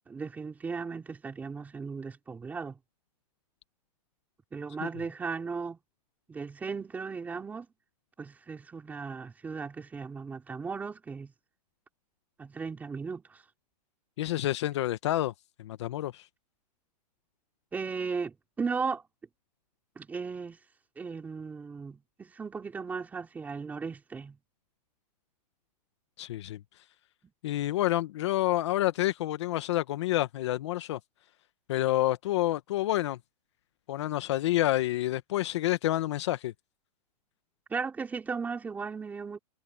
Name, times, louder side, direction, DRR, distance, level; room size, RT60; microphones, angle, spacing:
voice 1, 0.1-2.8 4.5-5.8 6.3-7.7 8.2-11.3 12.4-13.4 17.7-19.0 20.0-20.6 21.0-24.4 37.7-39.4, right 5 dB, 10° right, 3.7 m, -36 dB
voice 2, 14.2-15.3 15.6-16.3 26.2-26.6 27.4-31.0 31.7-33.2 33.9-36.5, left 15 dB, 40° left, 1.1 m, -28 dB
hypercardioid pair, 170°, 21 cm